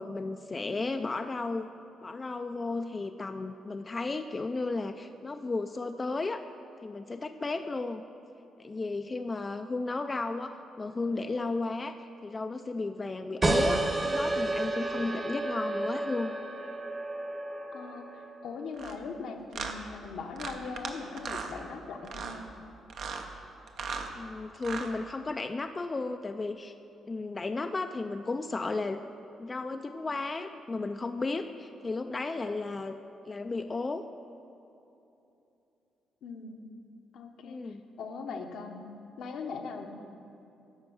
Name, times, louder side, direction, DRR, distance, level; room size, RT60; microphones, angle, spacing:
voice 1, 0.0-1.7 2.0-6.4 6.8-8.0 8.6-16.3 24.1-26.7 27.1-29.0 29.4-33.0 33.2-34.1 37.4-37.8, left 3 dB, 25° left, 7 dB, 0.3 m, -34 dB
sound 1, 13.4-18.6, right 2 dB, 25° right, 1.0 m, -31 dB
voice 2, 17.7-22.4 36.2-36.6 37.1-38.9 39.2-39.9, left 4 dB, 75° left, 4 dB, 0.9 m, -40 dB
sound 2, 18.8-19.0 19.5-19.7 20.4-20.9 21.2-21.5 22.0-22.4 22.9-23.3 23.7-24.1 24.6-24.9, right 5 dB, 65° right, 0.7 m, -37 dB
11.0 x 4.5 x 7.0 m, 2.9 s
cardioid pair, 90°, 0 cm